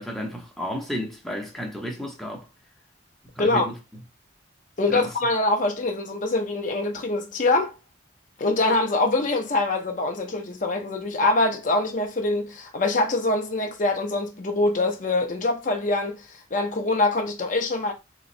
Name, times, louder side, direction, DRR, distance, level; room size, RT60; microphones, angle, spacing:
voice 1, 0.0-2.5 3.3-3.7 4.9-5.1, equal, ahead, 0.8 m, -32 dB
voice 2, 4.8-7.7 8.4-17.9, left 2 dB, 40° left, 0.6 m, -24 dB
3.8 x 3.0 x 2.6 m
head